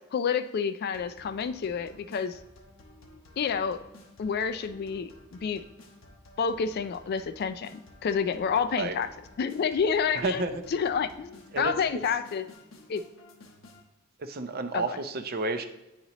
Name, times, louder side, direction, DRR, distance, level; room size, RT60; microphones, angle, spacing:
voice 1, 0.1-2.4 3.4-3.8 4.2-5.6 6.4-9.1 9.4-10.4 10.7-12.4 12.9-13.0 14.7-15.0, left 6 dB, 50° left, 10 dB, 0.3 m, -29 dB
sound 1, 0.9-13.9, left 2 dB, 80° left, 0.9 m, -53 dB
voice 2, 10.2-10.6 11.5-12.0 14.2-15.7, right 3 dB, 50° right, 8 dB, 0.5 m, -31 dB
9.3 x 4.1 x 2.9 m, 0.97 s
head